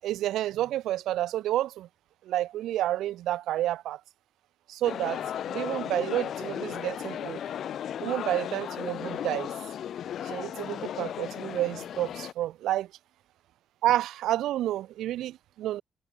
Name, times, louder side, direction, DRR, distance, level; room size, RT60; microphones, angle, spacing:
voice 1, 0.0-1.9 2.2-4.0 4.7-5.2 5.5-7.4 8.0-9.5 10.2-12.9 13.8-15.8, right 13 dB, 85° right, 6.6 m, -30 dB
sound 1, 4.8-12.3, left 10 dB, 65° left, 6.7 m, -35 dB
cardioid pair, 90°, 0 cm